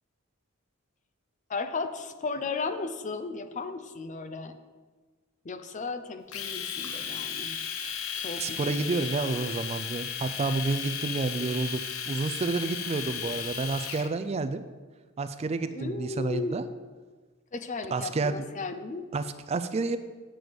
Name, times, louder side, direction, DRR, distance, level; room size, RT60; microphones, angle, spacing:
voice 1, 1.5-4.6 5.4-7.6 8.2-8.9 9.2-9.3 15.7-16.6 17.5-19.0, left 4 dB, 35° left, 9 dB, 0.5 m, -35 dB
Domestic sounds home sounds, 6.3-14.1, left 7 dB, 85° left, 0.8 m, -35 dB
voice 2, 8.4-14.6 15.2-16.6 17.9-18.5 19.1-20.0, right 3 dB, 30° right, 11 dB, 0.3 m, -30 dB
7.9 x 7.6 x 5.1 m, 1.4 s
head